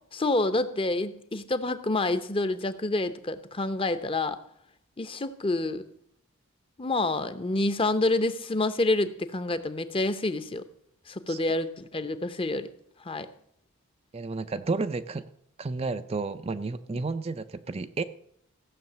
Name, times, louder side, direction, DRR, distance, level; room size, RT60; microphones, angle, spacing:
voice 1, 0.1-4.4 5.0-5.9 6.8-10.6 11.1-12.7 13.0-13.3, left 2 dB, 25° left, 12 dB, 0.8 m, -28 dB
voice 2, 14.1-15.3 15.6-18.0, right 3 dB, 25° right, 10 dB, 0.4 m, -31 dB
15.5 x 6.5 x 7.8 m, 0.71 s
head